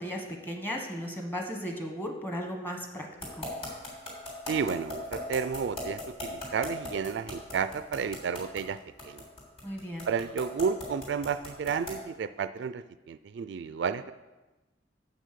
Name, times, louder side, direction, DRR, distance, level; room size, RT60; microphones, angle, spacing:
voice 1, 0.0-3.1 3.3-3.5 9.6-10.1, equal, 10° left, 2 dB, 1.2 m, -36 dB
sound 1, 3.2-12.1, left 1 dB, 30° left, 3.2 m, -38 dB
voice 2, 4.5-8.8 9.0-9.2 10.1-14.1, right 6 dB, 65° right, 13 dB, 0.3 m, -32 dB
7.4 x 6.3 x 6.7 m, 1.1 s
head